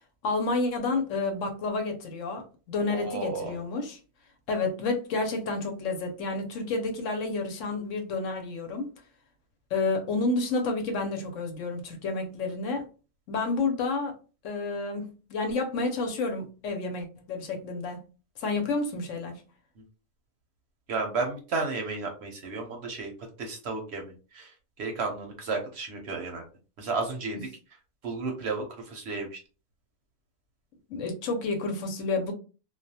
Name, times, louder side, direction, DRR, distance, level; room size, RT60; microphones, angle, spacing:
voice 1, 0.2-4.0 4.5-8.9 9.7-12.8 13.3-14.2 14.4-18.0 18.4-19.3 30.9-32.3, left 3 dB, 70° left, 0.9 m, -30 dB
voice 2, 2.9-3.5 20.9-23.1 23.4-24.5 24.8-26.4 26.8-27.4 28.0-29.4, right 3 dB, 60° right, 0.8 m, -32 dB
2.3 x 2.2 x 2.6 m
omnidirectional pair, 1.4 m